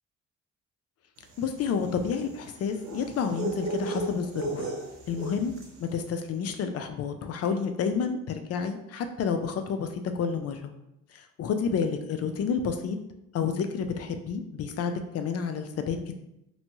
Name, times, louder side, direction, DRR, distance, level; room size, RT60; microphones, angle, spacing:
sound 1, 1.3-5.8, right 2 dB, 65° right, 0.7 m, -35 dB
voice 1, 1.4-4.7 5.1-5.5 5.8-10.7 11.1-13.0 13.3-16.1, left 6 dB, 55° left, 7 dB, 0.4 m, -30 dB
2.7 x 2.2 x 2.9 m, 0.83 s
cardioid pair, 90°, 30 cm